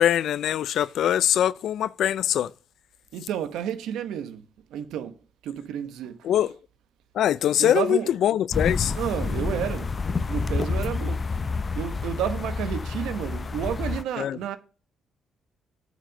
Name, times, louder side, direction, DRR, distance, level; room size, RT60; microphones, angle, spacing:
voice 1, 0.0-2.5 6.2-6.5 7.1-8.9 14.2-14.4, left 11 dB, 75° left, 0.3 m, -23 dB
voice 2, 3.1-4.5 4.7-5.2 5.4-6.3 7.6-8.1 8.9-9.9 10.3-11.2 11.7-14.6, right 9 dB, 85° right, 0.9 m, -31 dB
sound 1, 8.5-14.0, left 4 dB, 35° left, 0.6 m, -28 dB
9.0 x 4.9 x 6.4 m
cardioid pair, 90°, 0 cm